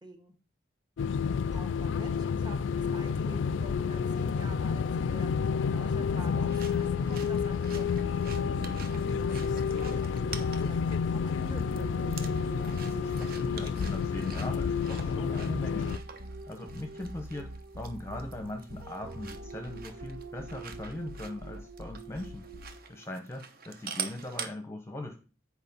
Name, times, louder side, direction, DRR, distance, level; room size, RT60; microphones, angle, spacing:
voice 1, 0.0-0.3 1.5-5.4 5.7-8.7 8.9-11.6, right 1 dB, 25° right, 5 dB, 1.6 m, -48 dB
sound 1, 1.0-16.0, left 6 dB, 75° left, 0.3 m, -30 dB
voice 2, 6.2-6.5 12.5-15.9 16.5-22.5 22.9-25.2, left 1 dB, 15° left, 5 dB, 0.8 m, -40 dB
sound 2, 6.5-24.5, right 7 dB, 50° right, 0.9 m, -46 dB
sound 3, 7.9-23.0, right 1 dB, 75° right, 1.2 m, -44 dB
8.0 x 4.7 x 5.3 m, 0.34 s
head